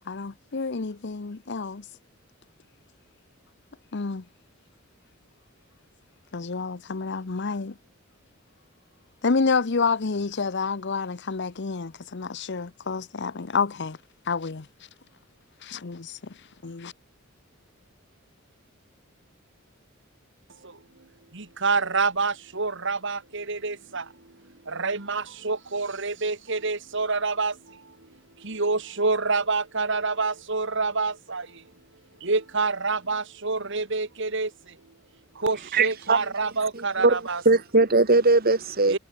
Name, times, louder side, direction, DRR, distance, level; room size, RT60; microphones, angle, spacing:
voice 1, 0.1-1.8 3.9-4.2 6.3-7.7 9.2-14.0 14.3-14.7 15.6-16.2 16.6-16.9, left 4 dB, 55° left, 0.8 m, -28 dB
voice 2, 21.3-24.1 24.7-27.8 28.4-31.6 32.2-34.5 35.4-37.4 38.9-39.0, right 4 dB, 60° right, 2.6 m, -27 dB
voice 3, 35.7-36.2 36.7-39.0, right 3 dB, 45° right, 1.9 m, -20 dB
head